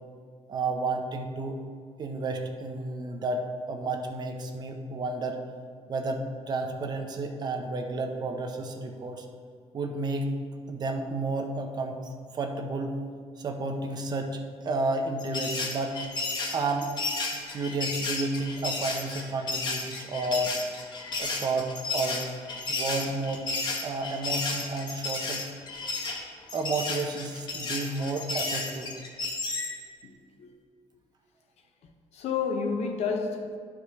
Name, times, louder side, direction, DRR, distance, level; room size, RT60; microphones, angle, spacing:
voice 1, 0.5-1.6 2.0-5.4 5.9-9.3 9.7-10.4 10.7-13.0 13.4-16.0 16.5-17.0 17.5-20.6 21.2-22.3 22.7-23.5 23.8-25.5 26.5-28.9 32.6-32.7, right 2 dB, 35° right, 0.7 m, -31 dB
sound 1, 15.2-29.8, left 3 dB, 40° left, 1.0 m, -32 dB
voice 2, 32.1-33.6, left 5 dB, 70° left, 0.7 m, -30 dB
11.0 x 4.8 x 3.5 m
cardioid pair, 175°, 11 cm